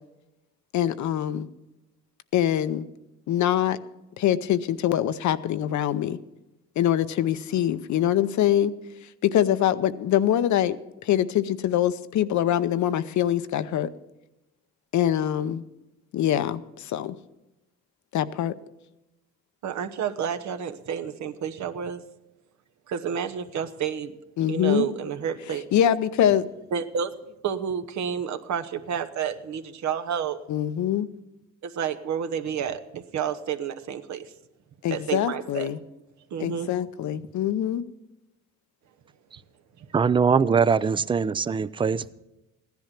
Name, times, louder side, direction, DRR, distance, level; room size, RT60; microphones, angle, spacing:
voice 1, 0.7-1.5 2.3-2.9 3.3-3.8 4.2-6.2 6.8-8.7 9.2-10.8 11.0-13.9 14.9-15.6 16.1-17.2 18.1-18.5 24.4-24.9 25.7-26.4 30.5-31.1 34.8-35.8 36.4-37.8, left 11 dB, 70° left, 0.7 m, -24 dB
voice 2, 19.6-22.0 22.9-24.1 24.5-25.6 26.7-30.4 31.6-34.3 34.9-35.7 36.3-36.7, right 8 dB, 70° right, 1.0 m, -30 dB
voice 3, 39.9-42.1, right 6 dB, 15° right, 0.4 m, -22 dB
15.0 x 10.5 x 5.9 m
cardioid pair, 90°, 30 cm